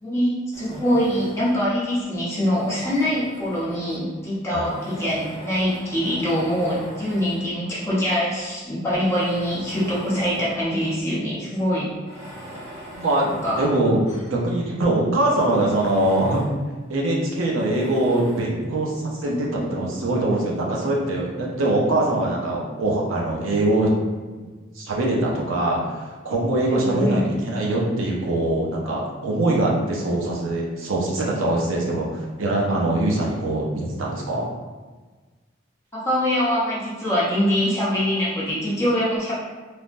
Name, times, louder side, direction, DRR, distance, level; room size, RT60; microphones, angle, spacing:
voice 1, 0.0-11.9 13.4-13.7 19.2-19.7 26.7-27.2 33.1-33.3 35.9-39.3, equal, 15° left, -8 dB, 0.7 m, -24 dB
Tools, 0.5-1.6 2.3-3.9 4.6-7.5 8.2-8.3 8.9-10.6 11.0-11.1 11.9-14.4 14.8-14.9 15.2-16.6 17.6-18.6, right 1 dB, 35° right, 0.7 m, -41 dB
voice 2, 13.0-14.0 14.3-16.4 16.9-23.9 24.4-24.5 24.8-34.5, right 1 dB, 85° right, -2 dB, 0.6 m, -23 dB
3.2 x 2.0 x 2.5 m, 1.3 s
head